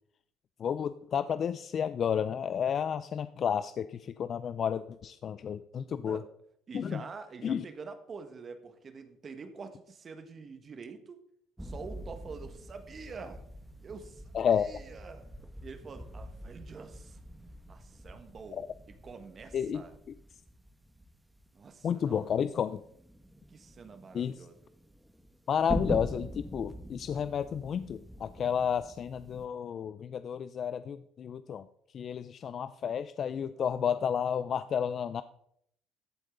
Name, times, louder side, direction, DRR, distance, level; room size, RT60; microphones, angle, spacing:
voice 1, 0.6-6.2 6.7-7.0 7.4-7.6 14.3-14.7 18.5-18.7 19.5-19.8 21.8-22.8 24.1-24.5 25.5-31.7 31.9-35.2, left 8 dB, 50° left, 14 dB, 0.4 m, -31 dB
voice 2, 6.7-11.2 11.6-13.4 13.8-14.2 14.5-15.3 15.6-17.2 17.7-18.6 19.0-19.9 21.5-22.3 23.5-24.7, right 4 dB, 40° right, 9 dB, 1.6 m, -46 dB
sound 1, 11.6-29.5, equal, 5° right, 1.1 m, -43 dB
14.5 x 8.0 x 3.9 m, 0.71 s
supercardioid pair, 80°, 0 cm